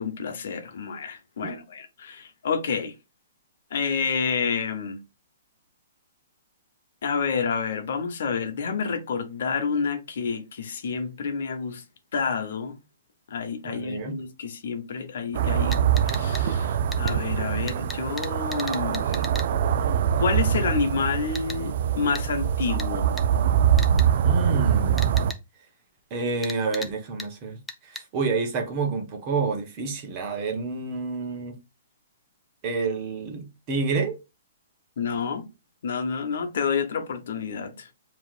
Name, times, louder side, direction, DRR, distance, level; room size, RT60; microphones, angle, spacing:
voice 1, 0.0-2.9 3.7-5.0 7.0-11.8 12.1-12.8 13.3-19.2 20.2-23.1 35.0-35.5 35.8-37.9, left 5 dB, 60° left, 0.9 m, -29 dB
voice 2, 13.6-14.1 24.2-25.2 26.1-31.5 32.6-34.2, right 4 dB, 30° right, 1.1 m, -29 dB
sound 1, 15.3-25.3, right 9 dB, 55° right, 0.4 m, -23 dB
sound 2, 15.7-16.4 16.9-17.2 17.7-19.5 21.4-21.6 22.2-22.3 22.8-22.9 23.2-23.3 23.8-24.1 25.0-25.4 26.4-26.9 27.2-27.3 27.7-28.0, left 2 dB, 5° left, 0.5 m, -36 dB
7.0 x 3.0 x 2.4 m
hypercardioid pair, 160°, 0 cm